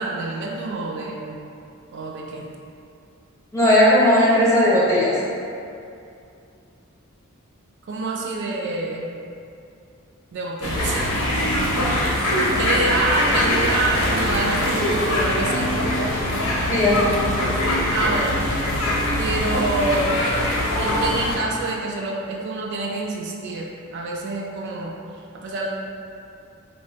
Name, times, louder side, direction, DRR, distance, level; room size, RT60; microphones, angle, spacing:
voice 1, 0.0-1.4 1.9-2.5 7.9-9.1 10.3-11.2 11.6-11.7 12.5-15.7 17.9-18.4 19.2-20.3 20.8-24.9 25.3-25.7, right 2 dB, 55° right, -2 dB, 0.3 m, -27 dB
voice 2, 3.5-5.1 16.7-17.2, left 1 dB, 15° left, -7 dB, 0.5 m, -16 dB
sound 1, 10.6-21.4, left 1 dB, 90° left, 0.6 m, -22 dB
3.4 x 2.0 x 2.7 m, 2.6 s
head